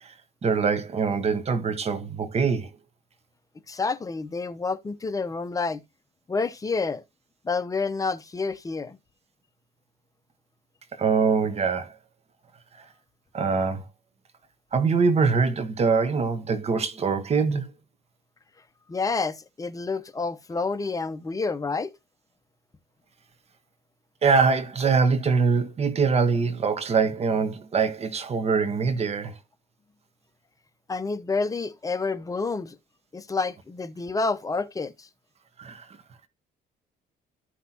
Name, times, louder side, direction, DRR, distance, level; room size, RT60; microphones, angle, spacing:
voice 1, 0.4-2.7 11.0-11.9 13.3-13.8 14.7-17.7 24.2-29.3 35.6-35.8, right 5 dB, 40° right, 1.4 m, -23 dB
voice 2, 3.7-5.8 6.3-7.0 7.4-9.0 18.9-21.9 30.9-32.8 33.1-35.1, left 4 dB, 20° left, 0.9 m, -29 dB
13.5 x 5.8 x 2.9 m
cardioid pair, 110°, 17 cm